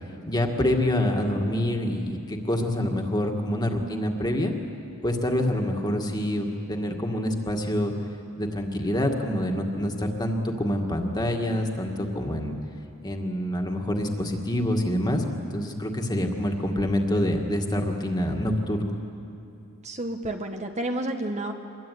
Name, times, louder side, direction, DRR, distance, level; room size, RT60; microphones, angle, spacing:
voice 1, 0.3-4.5 5.0-7.9 8.4-12.6 13.0-15.2 15.5-18.9, left 1 dB, 20° left, 2 dB, 2.1 m, -26 dB
voice 2, 19.8-21.5, right 1 dB, 35° right, 4 dB, 1.2 m, -30 dB
25.0 x 22.0 x 9.5 m, 2.6 s
head